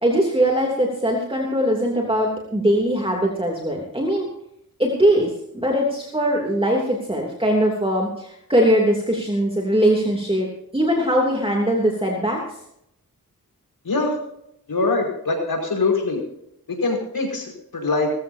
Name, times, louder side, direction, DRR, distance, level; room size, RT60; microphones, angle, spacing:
voice 1, 0.0-4.3 4.8-10.5 10.7-12.4, equal, 15° right, -1 dB, 2.9 m, -21 dB
voice 2, 14.7-16.2 16.7-18.1, left 3 dB, 75° left, 0 dB, 5.2 m, -23 dB
20.5 x 14.0 x 2.8 m, 0.77 s
wide cardioid pair, 65°, 36 cm